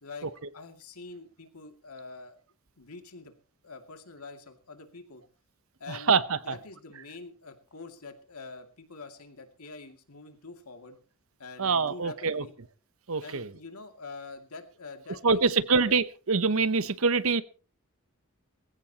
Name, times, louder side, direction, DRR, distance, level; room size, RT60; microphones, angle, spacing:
voice 1, 0.0-2.4 2.8-3.3 3.6-5.2 5.8-11.0 11.4-12.5 13.2-15.8, left 3 dB, 85° left, 6 dB, 2.4 m, -45 dB
voice 2, 5.9-6.5 11.6-12.4 13.1-13.5 15.2-17.4, right 4 dB, 65° right, 15 dB, 0.9 m, -25 dB
20.5 x 16.0 x 2.9 m, 0.36 s
head